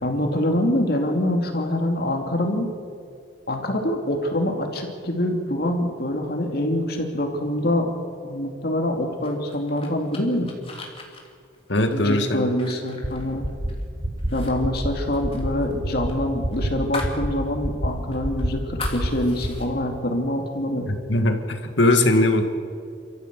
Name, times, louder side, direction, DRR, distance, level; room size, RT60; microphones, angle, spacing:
voice 1, 0.0-2.7 3.5-7.9 8.2-10.5 11.9-13.5 14.3-20.9, left 1 dB, 55° left, 3 dB, 2.6 m, -25 dB
sound 1, 9.2-13.8 14.2-14.5 14.8-17.2 17.6-17.7 18.1-19.7, left 3 dB, 30° left, 3.0 m, -39 dB
voice 2, 11.7-12.4 20.9-22.4, left 1 dB, 85° left, 6 dB, 2.2 m, -20 dB
sound 2, 13.0-13.1 13.4-13.7 14.0-14.3 14.6-14.9 15.2-15.5 15.8-16.1 16.4-16.7 17.0-17.3 17.6-17.9 18.2-18.5 18.8-19.1 19.4-19.5, equal, 55° right, 4.2 m, -25 dB
28.0 x 14.0 x 8.4 m, 2.3 s
head